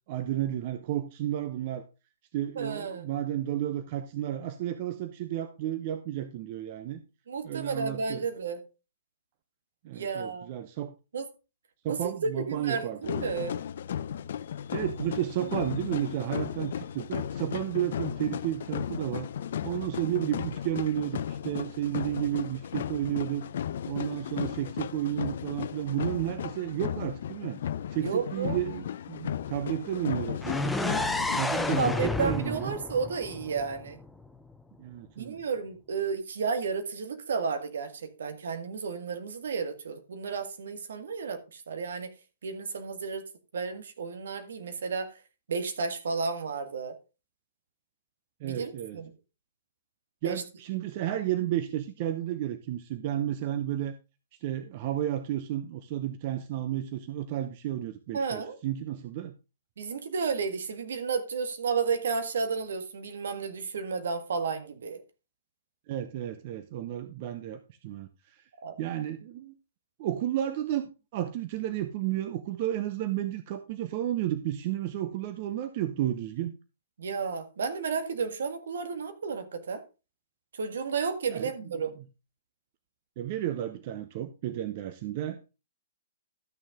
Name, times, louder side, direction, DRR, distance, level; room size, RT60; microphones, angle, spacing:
voice 1, 0.1-1.9 2.3-7.0 7.4-8.2 9.8-10.9 11.8-13.0 14.7-19.3 19.6-23.5 23.9-27.6 27.9-31.1 31.4-32.8 34.8-35.4 48.4-49.0 50.2-53.9 54.4-59.3 65.9-68.4 68.8-69.5 70.0-76.5 81.3-81.5 83.2-85.5, right 12 dB, 45° right, 0.8 m, -32 dB
voice 2, 2.5-3.1 7.3-8.6 9.9-10.5 11.1-11.3 11.9-13.6 28.0-28.6 31.5-34.0 35.2-42.1 42.4-43.3 43.5-45.2 45.5-46.9 48.4-49.1 50.2-50.4 58.1-58.6 59.8-65.0 68.6-68.8 77.0-79.8 80.5-81.9, right 5 dB, 70° right, 1.7 m, -32 dB
sound 1, 13.0-31.9, left 9 dB, 60° left, 0.5 m, -35 dB
sound 2, 30.4-34.3, left 2 dB, 5° left, 0.6 m, -31 dB
13.0 x 6.3 x 3.6 m
hypercardioid pair, 125°, 0 cm